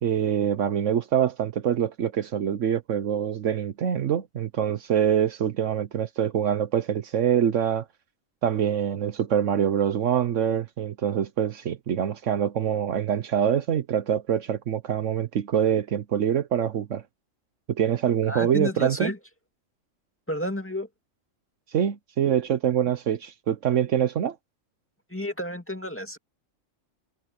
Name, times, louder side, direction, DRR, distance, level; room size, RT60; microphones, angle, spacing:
voice 1, 0.0-7.8 8.4-17.0 17.7-19.1 21.7-24.4, right 9 dB, 70° right, 1.1 m, -25 dB
voice 2, 18.3-19.2 20.3-20.9 25.1-26.2, equal, 10° left, 2.2 m, -30 dB
omnidirectional pair, 1.4 m